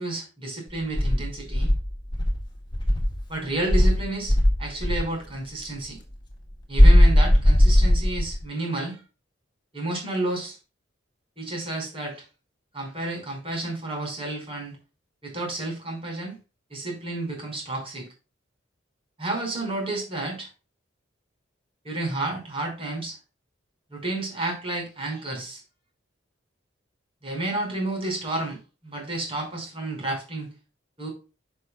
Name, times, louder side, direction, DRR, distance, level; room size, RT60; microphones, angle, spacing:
voice 1, 0.0-1.7 3.3-6.0 6.7-9.0 9.7-10.6 11.4-12.2 12.7-14.8 15.2-16.4 16.7-18.1 19.2-20.5 21.8-23.2 23.9-25.6 27.2-28.6 28.8-30.5 31.0-31.1, right 2 dB, 30° right, 5.3 m, -31 dB
Insect, 0.9-3.2 3.7-5.1 6.8-8.4, equal, 25° left, 2.0 m, -18 dB
11.0 x 6.5 x 2.3 m
head